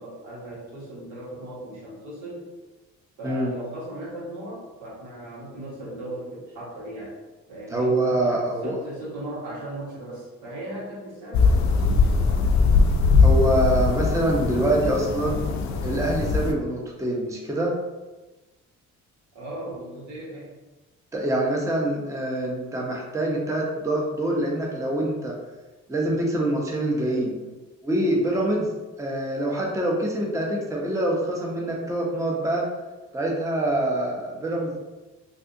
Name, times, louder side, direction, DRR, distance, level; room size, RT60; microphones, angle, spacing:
voice 1, 0.0-2.5 3.2-7.2 7.5-7.9 8.2-12.4 19.3-20.6, right 1 dB, 85° right, -6 dB, 1.4 m, -37 dB
voice 2, 7.7-8.8 13.2-15.4 15.8-17.7 21.1-25.4 25.9-27.3 27.8-28.7 29.0-32.6 33.1-34.8, right 1 dB, 10° right, -1 dB, 0.6 m, -25 dB
sound 1, 11.3-16.5, left 4 dB, 70° left, 0.5 m, -20 dB
3.4 x 2.7 x 2.6 m, 1.1 s
cardioid pair, 90°, 30 cm